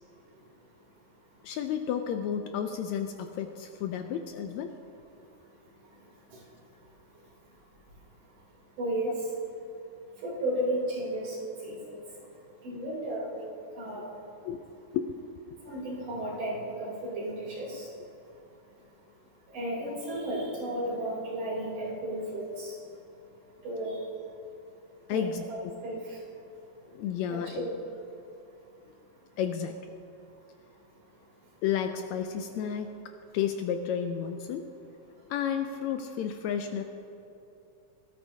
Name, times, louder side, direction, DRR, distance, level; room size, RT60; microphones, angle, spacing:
voice 1, 1.4-4.7 12.7-12.8 14.4-14.6 14.9-15.1 15.5-15.8 19.9-20.0 25.1-25.7 26.9-27.6 29.4-29.8 31.6-33.0 33.3-34.7 35.3-36.8, left 8 dB, 80° left, 6 dB, 1.7 m, -32 dB
voice 2, 8.8-9.1 10.2-11.4 11.6-11.8 12.6-13.3 13.8-14.0 15.7-17.9 19.5-22.7 23.6-23.9 25.1-25.2 25.8-26.0 27.3-27.7, right 1 dB, 75° right, -5 dB, 4.6 m, -33 dB
17.5 x 12.5 x 2.7 m, 3.0 s
omnidirectional pair, 3.5 m